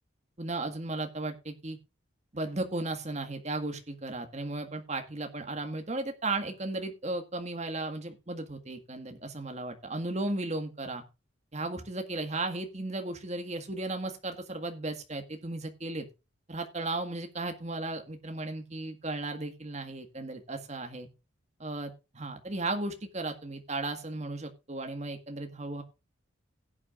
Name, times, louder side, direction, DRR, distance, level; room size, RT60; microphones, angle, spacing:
voice 1, 0.4-1.8 2.3-11.0 11.5-16.1 16.5-21.1 21.6-25.8, right 2 dB, 35° right, 6 dB, 1.7 m, -35 dB
16.5 x 8.4 x 2.5 m, 0.28 s
head